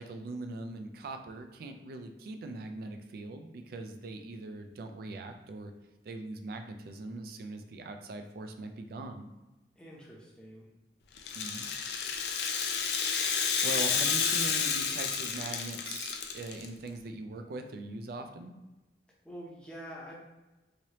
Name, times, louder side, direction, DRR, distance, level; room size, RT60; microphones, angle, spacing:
voice 1, 0.0-5.7 6.0-9.3 11.3-11.7 13.3-18.6, right 2 dB, 55° right, 6 dB, 0.3 m, -41 dB
voice 2, 9.8-10.7 19.2-20.1, equal, 5° left, -5 dB, 0.7 m, -46 dB
Rattle (instrument), 11.2-16.7, left 6 dB, 65° left, 0.4 m, -30 dB
3.1 x 2.7 x 2.9 m, 1.1 s
head